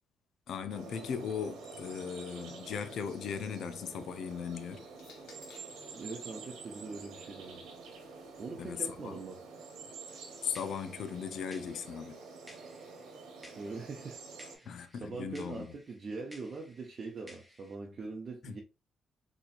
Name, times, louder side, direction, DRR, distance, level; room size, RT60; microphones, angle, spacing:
voice 1, 0.5-4.8 8.6-9.2 10.4-12.2 14.7-15.7 18.4-18.5, left 7 dB, 70° left, 0.6 m, -38 dB
sound 1, 0.7-14.6, right 4 dB, 90° right, 1.3 m, -48 dB
sound 2, 3.6-5.9 6.9-9.0, left 4 dB, 90° left, 1.0 m, -63 dB
voice 2, 5.9-7.6 8.4-9.5 13.5-14.2 14.5-18.6, right 4 dB, 45° right, 0.7 m, -42 dB
sound 3, 10.1-17.8, equal, 5° left, 0.9 m, -58 dB
4.1 x 3.0 x 2.5 m
cardioid pair, 90°, 0 cm